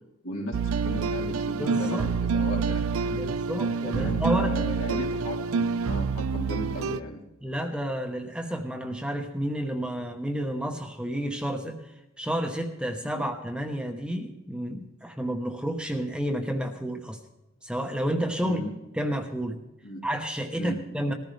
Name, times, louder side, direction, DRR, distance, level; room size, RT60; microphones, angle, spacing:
voice 1, 0.2-3.2 3.8-7.2 13.1-13.2 18.4-18.7 19.8-20.0 20.6-21.0, equal, 80° left, -2 dB, 3.4 m, -36 dB
sound 1, 0.5-7.0, right 5 dB, 85° right, 0.5 m, -27 dB
voice 2, 1.6-2.0 3.1-4.6 7.4-11.9 12.2-17.2 17.6-18.6 18.9-19.6 20.0-21.1, equal, 5° right, 3 dB, 1.0 m, -30 dB
20.5 x 14.5 x 3.4 m, 0.94 s
head